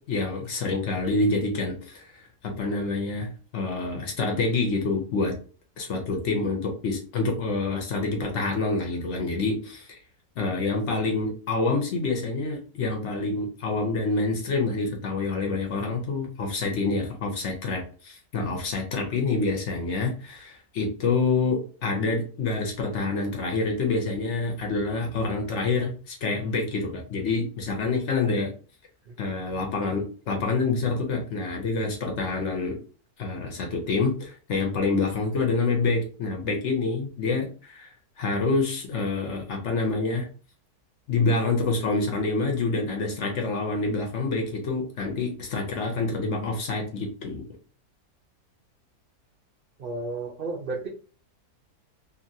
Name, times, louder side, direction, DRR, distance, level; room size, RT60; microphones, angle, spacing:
voice 1, 0.1-5.4 5.8-10.0 10.4-28.5 29.2-32.8 33.2-37.9 38.2-40.3 41.1-47.4, left 3 dB, 60° left, 2 dB, 0.9 m, -27 dB
voice 2, 49.8-50.9, right 3 dB, 70° right, -2 dB, 0.5 m, -32 dB
2.8 x 2.5 x 2.6 m, 0.39 s
omnidirectional pair, 1.6 m